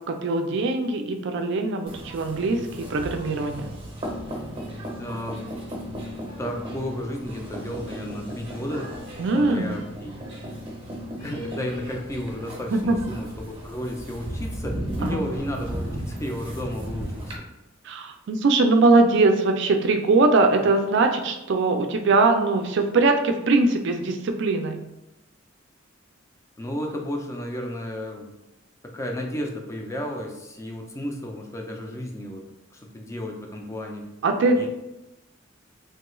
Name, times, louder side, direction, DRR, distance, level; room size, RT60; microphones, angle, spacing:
voice 1, 0.1-3.7 9.2-9.7 12.7-13.0 15.0-15.2 17.9-24.8 34.2-34.7, right 3 dB, 65° right, 5 dB, 0.4 m, -21 dB
sound 1, 1.9-17.4, equal, 30° right, 0.7 m, -35 dB
voice 2, 5.0-5.4 6.4-9.0 9.3-10.1 11.2-17.3 26.6-28.3 28.8-32.5 32.7-34.1 34.5-34.7, left 1 dB, 15° left, 2 dB, 0.4 m, -33 dB
3.1 x 2.3 x 3.0 m, 0.96 s
head